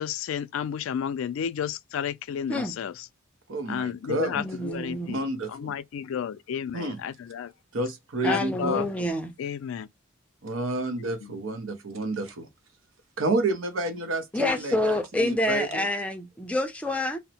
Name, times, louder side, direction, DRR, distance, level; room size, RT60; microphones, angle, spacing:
voice 1, 0.0-3.1 3.7-7.5 8.2-9.1 9.4-9.9 11.0-11.3, left 8 dB, 80° left, 0.3 m, -32 dB
voice 2, 3.5-4.4 5.0-5.7 6.7-7.0 7.7-8.9 10.4-12.5 13.2-15.9, right 2 dB, 80° right, 0.7 m, -30 dB
voice 3, 4.3-5.1 8.2-9.3 14.3-17.2, left 1 dB, 5° left, 0.4 m, -27 dB
2.8 x 2.0 x 2.8 m
head